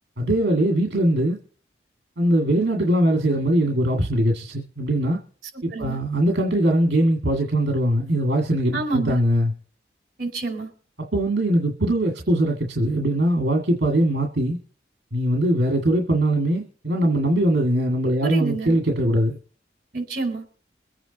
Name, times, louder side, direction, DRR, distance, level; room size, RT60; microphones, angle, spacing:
voice 1, 0.2-1.4 2.2-5.2 5.6-9.5 11.1-14.6 15.1-19.4, right 1 dB, 65° right, 2.0 m, -21 dB
voice 2, 8.7-9.2 10.2-10.7 18.2-18.8 19.9-20.4, right 3 dB, 50° right, 4.8 m, -28 dB
23.0 x 8.9 x 4.1 m
head